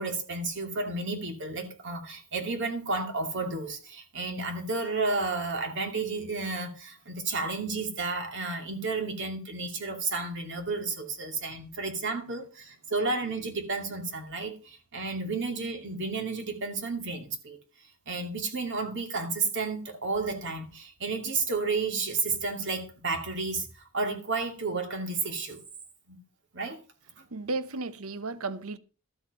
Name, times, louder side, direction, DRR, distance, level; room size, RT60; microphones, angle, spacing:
voice 1, 0.0-17.6 18.1-25.6 26.1-26.2 26.5-26.8 27.2-27.3, right 3 dB, 60° right, 2.5 m, -32 dB
voice 2, 27.3-28.8, right 3 dB, 75° right, 0.9 m, -34 dB
13.0 x 8.1 x 5.4 m
head